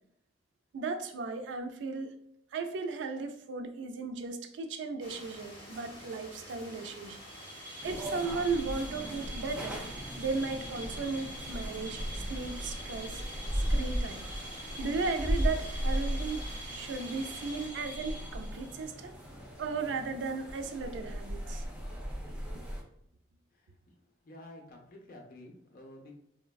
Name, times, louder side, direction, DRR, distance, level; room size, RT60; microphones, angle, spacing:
voice 1, 0.7-2.1 2.5-7.2 7.8-9.8 10.2-13.2 13.5-14.3 14.8-16.4 16.7-19.1 19.6-21.6, right 4 dB, 75° right, 7 dB, 0.3 m, -36 dB
sound 1, 5.0-17.7, left 1 dB, 25° left, 0.8 m, -49 dB
sound 2, 7.1-18.9, right 1 dB, 30° right, 1.0 m, -46 dB
sound 3, 7.8-22.8, equal, 5° right, 0.5 m, -37 dB
voice 2, 24.2-26.1, left 1 dB, 50° left, 1 dB, 0.5 m, -50 dB
3.2 x 2.1 x 2.3 m, 0.72 s
head